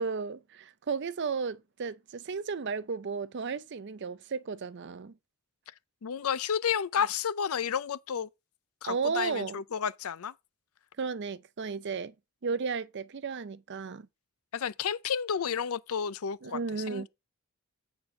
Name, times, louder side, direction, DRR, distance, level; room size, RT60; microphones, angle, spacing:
voice 1, 0.0-5.1 8.8-9.6 11.0-12.1 12.4-14.1 16.4-17.1, right 5 dB, 50° right, 0.5 m, -34 dB
voice 2, 6.0-8.3 8.8-10.3 14.5-16.6 16.9-17.1, left 7 dB, 75° left, 0.5 m, -31 dB
8.7 x 3.9 x 5.4 m
head